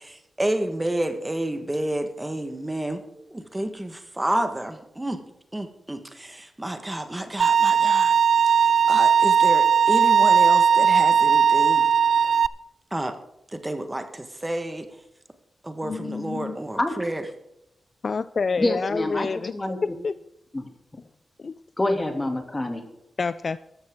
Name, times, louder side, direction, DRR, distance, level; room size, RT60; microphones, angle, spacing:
voice 1, 0.0-5.2 5.5-8.2 8.6-11.9 12.9-13.2 13.5-14.9 15.6-17.2, right 1 dB, 15° right, 7 dB, 1.3 m, -30 dB
Bowed string instrument, 7.4-12.5, right 7 dB, 70° right, 0.4 m, -18 dB
voice 2, 15.8-16.6 18.0-19.5 19.8-20.1 21.4-21.6 23.2-23.6, left 4 dB, 50° left, 15 dB, 0.4 m, -28 dB
voice 3, 18.6-19.8 20.5-20.7 21.8-22.8, left 1 dB, 20° left, 4 dB, 2.5 m, -26 dB
14.0 x 12.5 x 3.7 m, 0.86 s
cardioid pair, 80°, 0 cm